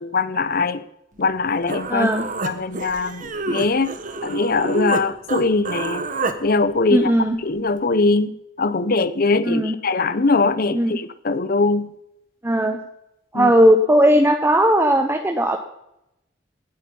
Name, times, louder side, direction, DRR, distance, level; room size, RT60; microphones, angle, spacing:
voice 1, 0.0-0.8 1.2-2.1 2.4-3.9 4.2-6.1 6.4-7.1 7.4-8.3 8.6-11.9 13.3-13.5, left 3 dB, 55° left, 14 dB, 0.8 m, -21 dB
Human voice, 1.3-1.4 1.7-5.0 5.3-6.4, right 3 dB, 45° right, 1.2 m, -28 dB
voice 2, 1.9-2.2 6.9-7.4 9.4-9.7 10.7-11.0 12.4-12.8 13.3-15.6, equal, 15° right, 6 dB, 0.8 m, -17 dB
17.5 x 8.9 x 5.4 m, 0.84 s
head